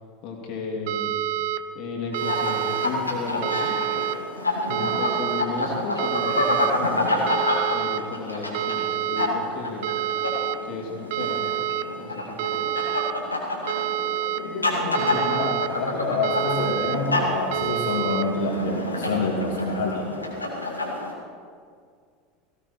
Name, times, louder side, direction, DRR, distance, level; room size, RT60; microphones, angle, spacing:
voice 1, 0.2-1.2 1.7-3.8 4.9-7.3 7.7-9.9 10.6-11.5 12.0-12.9, left 4 dB, 45° left, 1 dB, 3.0 m, -34 dB
sound 1, 0.9-1.6 2.1-2.9 3.4-4.2 4.7-5.4 6.0-6.7 7.3-8.0 8.5-9.3 9.8-10.6 11.1-11.8 12.4-13.1 13.7-14.4 14.9-15.7 16.2-17.0 17.5-18.2, right 11 dB, 55° right, 0.8 m, -27 dB
sound 2, 2.1-21.1, left 1 dB, 85° left, 2.1 m, -28 dB
voice 2, 4.7-5.0 14.4-20.2, left 3 dB, 65° left, -3 dB, 2.3 m, -27 dB
17.5 x 16.5 x 4.5 m, 2.1 s
figure-of-eight pair, 75°, 0 cm